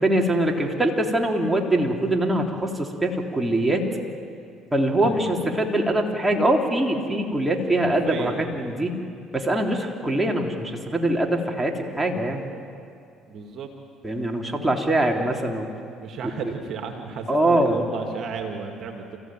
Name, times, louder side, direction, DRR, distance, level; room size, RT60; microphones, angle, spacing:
voice 1, 0.0-3.9 4.7-9.0 9.3-12.4 14.0-15.7 17.3-17.8, right 1 dB, 10° right, 0 dB, 3.6 m, -23 dB
voice 2, 5.0-5.3 7.8-8.5 13.3-13.7 16.0-19.2, right 6 dB, 60° right, 4 dB, 2.2 m, -34 dB
29.0 x 15.0 x 9.2 m, 2.4 s
hypercardioid pair, 70°, 0 cm